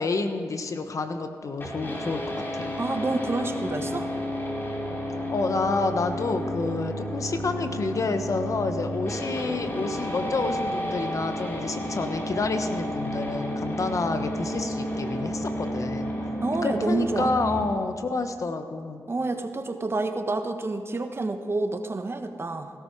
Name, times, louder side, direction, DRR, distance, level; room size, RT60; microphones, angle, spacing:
voice 1, 0.0-2.7 5.3-16.1 16.6-19.0, left 3 dB, 55° left, 7 dB, 1.3 m, -29 dB
sound 1, 1.6-17.6, equal, 35° left, 4.0 m, -31 dB
voice 2, 2.8-4.1 16.4-17.3 19.1-22.7, right 2 dB, 35° right, 7 dB, 1.2 m, -28 dB
17.0 x 13.0 x 4.7 m, 2.2 s
supercardioid pair, 50°, 7 cm